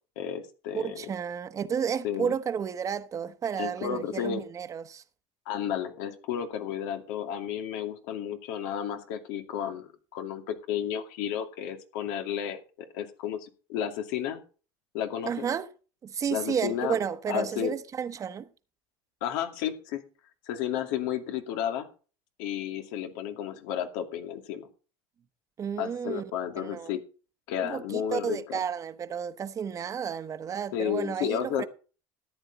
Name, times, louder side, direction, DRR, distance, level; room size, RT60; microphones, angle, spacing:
voice 1, 0.2-1.1 2.0-2.3 3.6-4.4 5.5-12.6 12.9-14.4 14.9-15.5 16.3-17.0 17.3-17.7 19.2-20.0 20.5-21.9 22.4-24.7 25.8-27.0 27.5-28.6 30.7-31.7, left 9 dB, 85° left, 2.5 m, -32 dB
voice 2, 0.7-5.0 15.2-15.7 16.0-18.5 25.6-26.2 26.6-26.9 27.6-31.7, right 7 dB, 30° right, 1.1 m, -32 dB
14.0 x 9.5 x 4.1 m
cardioid pair, 125°, 10 cm